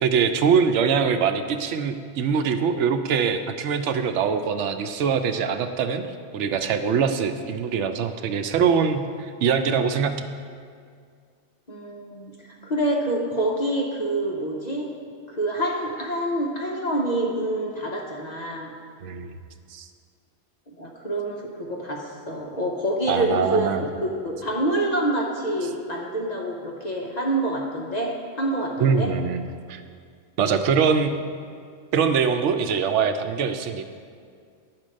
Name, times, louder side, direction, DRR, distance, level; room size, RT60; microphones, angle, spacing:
voice 1, 0.0-6.1 6.3-10.2 19.0-19.3 19.7-19.9 23.1-23.8 28.8-29.4 29.7-29.8 30.4-31.1 31.9-33.8, right 6 dB, 85° right, 8 dB, 0.9 m, -23 dB
voice 2, 11.7-14.9 15.3-18.7 20.7-28.1 28.4-29.1, right 1 dB, 40° left, -2 dB, 0.9 m, -27 dB
9.5 x 4.5 x 6.3 m, 2.1 s
omnidirectional pair, 1.2 m